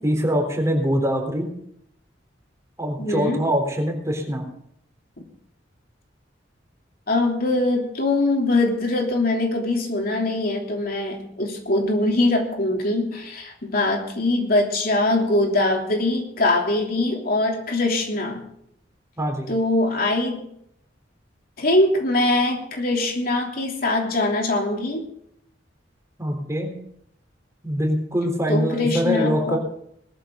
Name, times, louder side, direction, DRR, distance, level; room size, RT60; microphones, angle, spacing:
voice 1, 0.0-1.5 2.8-4.4 19.2-19.5 26.2-26.7 27.6-29.6, equal, 15° right, 2 dB, 3.7 m, -23 dB
voice 2, 3.0-3.4 7.1-18.4 19.5-20.5 21.6-25.0 28.5-29.6, left 2 dB, 55° left, 1 dB, 3.1 m, -22 dB
20.0 x 14.0 x 3.9 m, 0.72 s
head